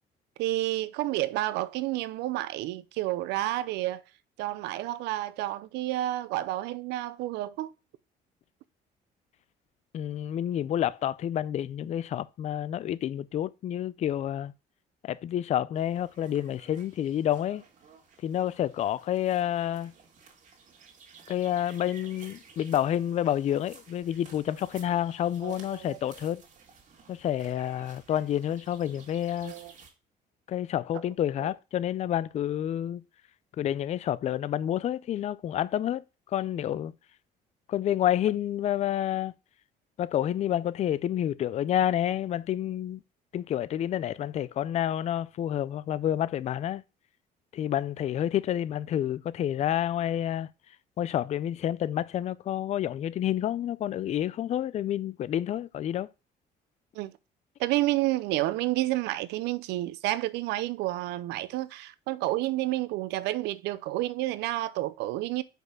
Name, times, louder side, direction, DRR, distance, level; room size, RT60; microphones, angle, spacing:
voice 1, 0.4-4.0 4.4-7.7 25.4-26.0 29.4-29.7 31.4-31.5 56.9-57.1 57.6-65.4, right 16 dB, 90° right, 0.6 m, -30 dB
voice 2, 9.9-14.5 15.0-17.6 18.2-19.9 21.3-26.4 27.1-29.5 30.5-33.0 33.6-36.0 36.3-36.9 37.7-39.3 40.0-43.0 43.3-46.8 47.5-50.5 51.0-56.1, left 11 dB, 40° left, 0.4 m, -29 dB
sound 1, 15.7-29.9, right 5 dB, 50° right, 2.2 m, -54 dB
5.3 x 4.3 x 6.1 m
cardioid pair, 110°, 17 cm